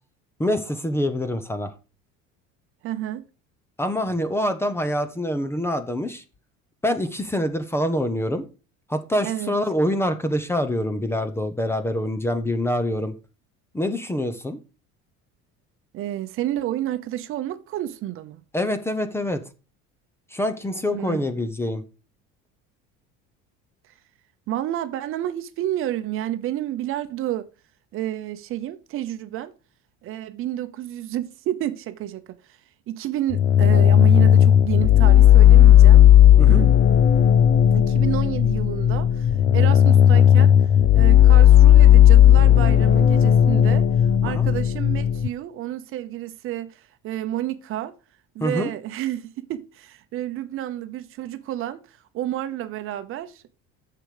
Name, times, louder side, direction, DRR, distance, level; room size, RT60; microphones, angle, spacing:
voice 1, 0.4-1.7 3.8-6.2 6.8-8.4 8.9-13.1 13.7-14.6 18.5-19.4 20.3-21.8 36.4-36.7 44.2-44.5 48.4-48.7, left 1 dB, 10° left, 0.7 m, -25 dB
voice 2, 2.8-3.2 9.2-9.5 15.9-18.4 20.9-21.2 24.5-27.5 27.9-29.5 30.0-32.6 32.9-36.0 36.5-36.8 37.7-40.5 40.9-43.9 44.2-47.9 48.3-53.5, right 13 dB, 45° right, 0.8 m, -30 dB
sound 1, 33.3-45.3, left 10 dB, 30° left, 0.4 m, -14 dB
9.6 x 6.9 x 4.9 m
cardioid pair, 160°, 29 cm